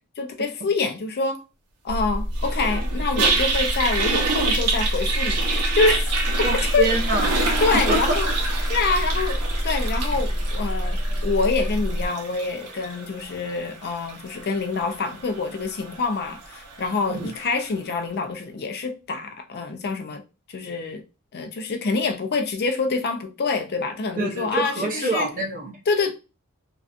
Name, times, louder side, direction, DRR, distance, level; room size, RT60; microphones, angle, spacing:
voice 1, 0.2-1.4 1.8-6.0 6.7-6.9 7.6-8.3 8.7-20.2 20.5-21.0 21.3-25.3 25.9-26.1, left 4 dB, 45° left, 0.5 m, -26 dB
sound 1, 1.9-12.1, equal, 65° right, 1.0 m, -26 dB
Toilet flush, 2.4-17.6, right 4 dB, 90° right, 0.7 m, -28 dB
voice 2, 6.4-7.3 7.9-8.4 17.1-17.3 24.2-25.8, right 2 dB, 40° right, 0.8 m, -26 dB
2.5 x 2.2 x 2.4 m
head